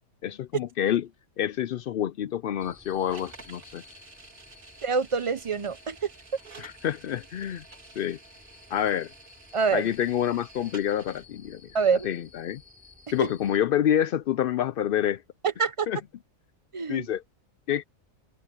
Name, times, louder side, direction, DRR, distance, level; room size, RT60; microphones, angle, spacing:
voice 1, 0.2-1.1 1.4-3.8 6.6-7.6 8.0-8.2 8.7-9.1 9.7-11.6 12.0-12.6 13.1-15.2 15.9-16.0 16.9-17.2 17.7-17.8, left 10 dB, 70° left, 0.5 m, -27 dB
sound 1, 2.6-13.6, left 4 dB, 5° right, 6.9 m, -54 dB
sound 2, 3.1-11.3, right 4 dB, 90° right, 3.4 m, -51 dB
voice 2, 4.8-6.1 9.5-9.9 11.7-12.1 13.2-13.3 15.4-15.9 16.7-17.1, right 5 dB, 35° right, 0.5 m, -26 dB
omnidirectional pair, 1.4 m